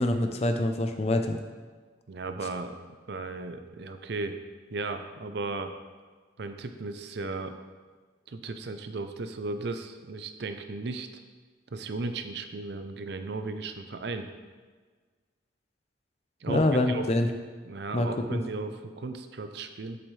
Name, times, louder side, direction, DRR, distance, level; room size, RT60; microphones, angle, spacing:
voice 1, 0.0-1.4 16.5-17.3 17.9-18.4, left 1 dB, 35° left, 6 dB, 0.5 m, -25 dB
voice 2, 2.1-2.8 3.1-4.4 4.7-5.7 6.4-7.6 8.3-11.1 11.7-14.3 16.4-17.1 17.6-20.0, right 3 dB, 55° right, 8 dB, 0.5 m, -35 dB
8.0 x 7.0 x 3.2 m, 1.5 s
head